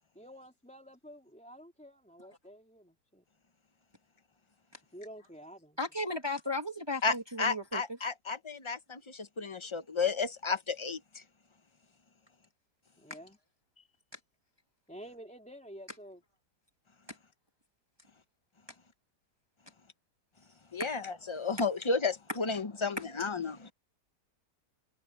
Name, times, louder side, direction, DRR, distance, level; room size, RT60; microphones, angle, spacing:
voice 1, 0.1-3.2 4.9-5.8 13.0-13.4 13.8-14.0 14.9-16.2, equal, 5° left, 3.2 m, -50 dB
voice 2, 5.8-8.0 17.1-17.2 20.8-20.9 23.0-23.1, left 1 dB, 15° right, 2.1 m, -35 dB
voice 3, 7.0-11.0 20.7-23.7, left 4 dB, 25° left, 0.6 m, -32 dB
omnidirectional pair, 1.8 m